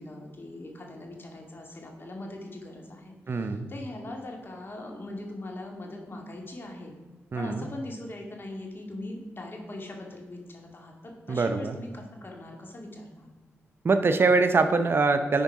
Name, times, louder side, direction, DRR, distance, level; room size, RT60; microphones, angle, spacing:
voice 1, 0.0-6.9 7.3-13.3, left 1 dB, 45° left, 1 dB, 2.1 m, -41 dB
voice 2, 3.3-3.7 7.3-7.6 11.3-11.8 13.8-15.4, right 3 dB, 45° right, 8 dB, 0.7 m, -23 dB
10.0 x 4.5 x 4.8 m, 1.3 s
cardioid pair, 60°, 5 cm